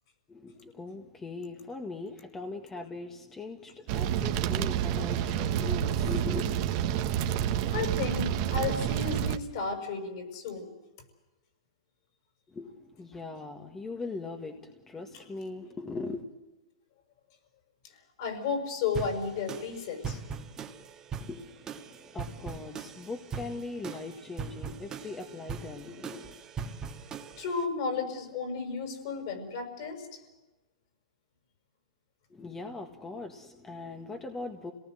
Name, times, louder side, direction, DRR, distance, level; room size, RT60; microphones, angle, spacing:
voice 1, 0.3-6.5 12.5-16.3 21.2-26.4 32.3-34.7, left 3 dB, 10° left, 5 dB, 1.7 m, -40 dB
sound 1, 3.9-9.4, right 10 dB, 45° right, 1.6 m, -29 dB
voice 2, 7.7-10.7 18.2-20.2 27.4-30.2, left 5 dB, 55° left, 6 dB, 6.2 m, -33 dB
sound 2, 18.9-27.6, right 6 dB, 20° right, 1.7 m, -41 dB
27.5 x 19.0 x 7.9 m, 1.1 s
hypercardioid pair, 140°, 3 cm